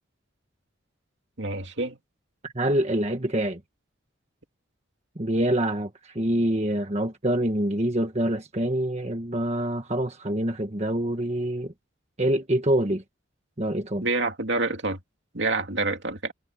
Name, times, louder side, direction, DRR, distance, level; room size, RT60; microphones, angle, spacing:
voice 1, 1.4-2.0 14.0-15.0 15.3-16.3, right 3 dB, 65° right, 2.6 m, -27 dB
voice 2, 2.4-3.6 5.2-11.7 12.2-13.0 13.6-14.1, right 1 dB, 35° right, 1.5 m, -26 dB
head